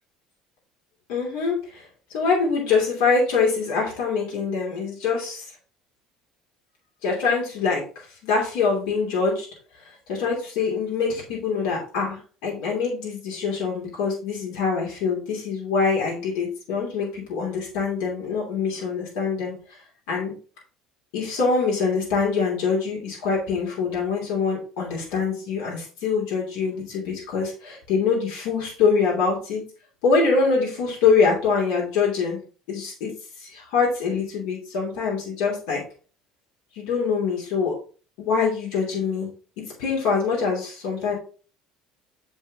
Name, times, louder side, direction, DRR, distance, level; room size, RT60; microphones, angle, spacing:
voice 1, 1.1-1.8 2.1-5.4 7.0-7.8 8.2-9.5 10.1-19.5 20.1-20.3 21.1-29.6 30.0-32.4 32.7-33.1 33.4-35.8 36.8-37.7 38.2-39.3 39.8-41.1, left 5 dB, 80° left, -3 dB, 2.8 m, -24 dB
7.4 x 4.8 x 3.6 m, 0.38 s
cardioid pair, 165°, 0 cm